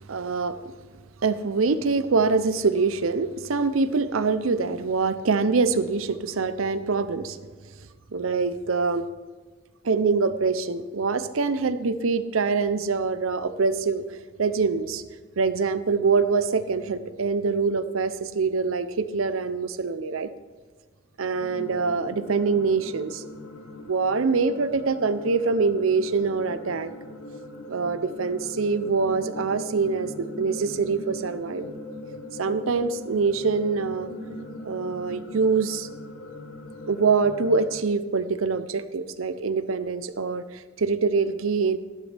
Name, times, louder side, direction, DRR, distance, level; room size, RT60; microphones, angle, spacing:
voice 1, 0.1-0.5 1.2-7.4 8.1-9.1 9.8-14.0 14.4-15.0 15.4-20.3 21.2-23.2 23.9-26.9 27.7-31.7 32.4-34.1 34.6-35.9 36.9-41.8, right 4 dB, 85° right, 13 dB, 0.6 m, -24 dB
sound 1, 21.3-37.8, left 1 dB, 90° left, 1.3 m, -40 dB
13.0 x 11.5 x 3.4 m, 1.4 s
head